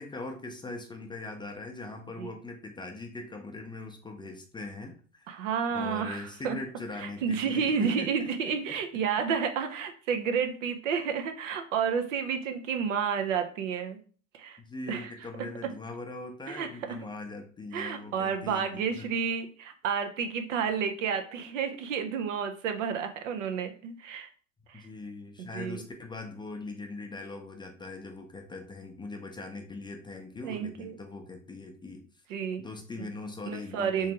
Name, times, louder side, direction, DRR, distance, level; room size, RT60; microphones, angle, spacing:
voice 1, 0.0-5.5 5.7-8.1 14.6-19.1 24.7-32.0 32.6-34.1, left 2 dB, 10° left, 4 dB, 0.5 m, -41 dB
voice 2, 5.3-6.6 7.0-14.0 14.3-14.6 14.9-15.1 16.5-17.0 17.7-24.3 24.7-24.9 25.4-25.8 30.4-31.0 32.3-32.6 33.5-34.1, right 6 dB, 75° right, 7 dB, 0.7 m, -31 dB
3.3 x 3.2 x 2.9 m, 0.41 s
hypercardioid pair, 80°, 39 cm